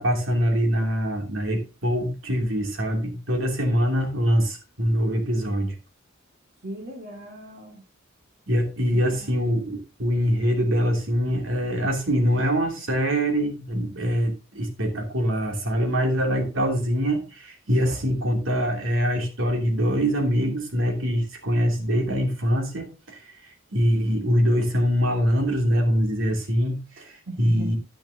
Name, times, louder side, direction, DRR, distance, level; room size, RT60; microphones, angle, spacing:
voice 1, 0.0-5.8 8.5-27.8, equal, 70° right, 3 dB, 2.9 m, -24 dB
voice 2, 6.6-7.8 8.9-9.3 27.3-27.7, right 2 dB, 55° right, 0 dB, 2.2 m, -38 dB
10.5 x 10.5 x 2.8 m, 0.30 s
head